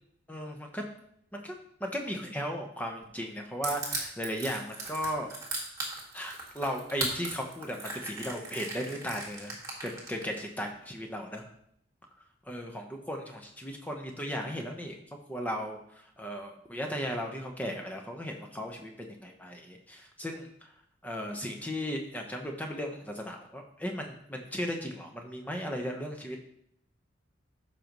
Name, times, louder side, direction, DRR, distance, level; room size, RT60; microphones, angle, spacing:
voice 1, 0.3-0.8 1.3-5.3 6.1-9.6 9.8-11.4 12.5-15.0 15.3-20.5 21.0-26.4, equal, 10° left, 2 dB, 1.0 m, -36 dB
Crushing, 3.6-10.4, right 3 dB, 15° right, 1.8 m, -37 dB
13.5 x 5.2 x 3.1 m, 0.71 s
head